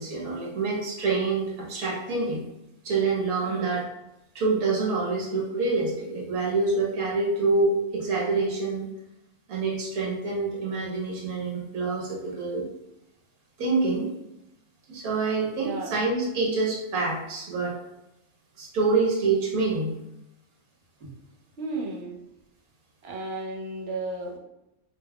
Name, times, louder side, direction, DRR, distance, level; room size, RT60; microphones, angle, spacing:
voice 1, 0.0-2.4 2.8-3.8 4.3-8.9 9.5-12.7 13.6-14.1 14.9-17.7 18.6-19.9, right 3 dB, 75° right, -3 dB, 1.5 m, -26 dB
voice 2, 3.4-3.9 15.6-16.0 21.6-22.2 23.0-24.4, right 2 dB, 50° right, 0 dB, 0.9 m, -34 dB
5.3 x 3.1 x 2.2 m, 0.89 s
omnidirectional pair, 1.5 m